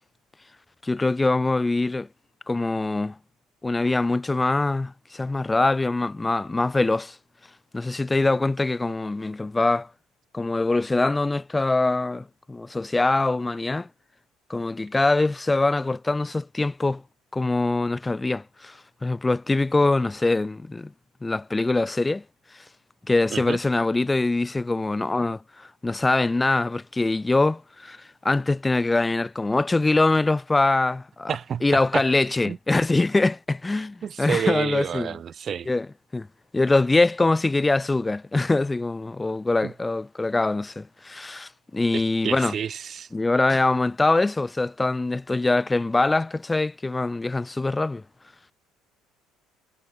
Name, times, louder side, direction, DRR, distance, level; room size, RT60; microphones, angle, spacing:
voice 1, 0.8-2.1 2.5-3.2 3.6-7.2 7.7-9.9 10.3-13.9 14.5-17.0 17.3-20.9 21.2-22.2 22.5-22.6 23.0-31.3 31.6-35.2 35.7-35.9 36.1-36.3 36.5-42.5 43.1-48.0, left 2 dB, 15° left, 1.0 m, -23 dB
voice 2, 31.3-32.0 32.4-32.6 34.0-35.7 39.6-39.7 41.9-43.1, right 8 dB, 45° right, 3.2 m, -29 dB
hypercardioid pair, 60°, 0 cm